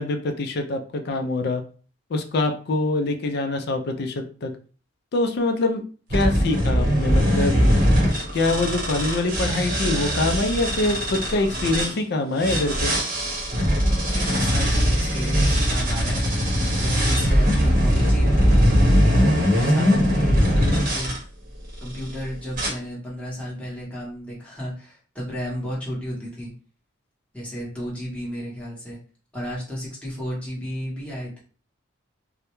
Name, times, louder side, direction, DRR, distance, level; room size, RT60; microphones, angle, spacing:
voice 1, 0.0-1.6 2.1-4.5 5.1-5.8 6.1-7.6 8.3-12.9, left 2 dB, 55° left, 6 dB, 0.4 m, -24 dB
sound 1, 6.1-11.9 12.4-21.2 21.8-22.1 22.5-22.7, equal, 45° right, 0.8 m, -21 dB
voice 2, 14.1-16.2 16.7-18.5 19.0-21.1 21.8-26.5 27.3-29.0 29.3-31.4, equal, 5° left, -6 dB, 0.8 m, -33 dB
2.3 x 2.0 x 2.9 m, 0.39 s
head